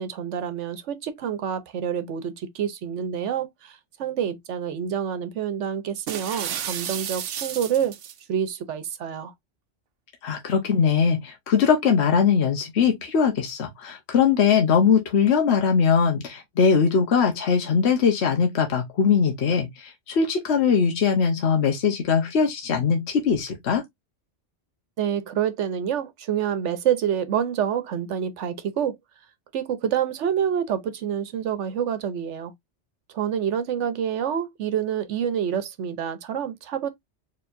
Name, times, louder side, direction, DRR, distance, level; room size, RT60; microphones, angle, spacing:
voice 1, 0.0-8.0 8.3-9.3 25.0-29.0 29.5-32.5 33.1-36.9, right 8 dB, 80° right, 1.0 m, -27 dB
sound 1, 6.1-8.2, right 9 dB, 60° right, 0.7 m, -32 dB
voice 2, 10.2-23.8, left 6 dB, 70° left, 1.2 m, -21 dB
4.5 x 3.4 x 2.6 m
omnidirectional pair, 1.2 m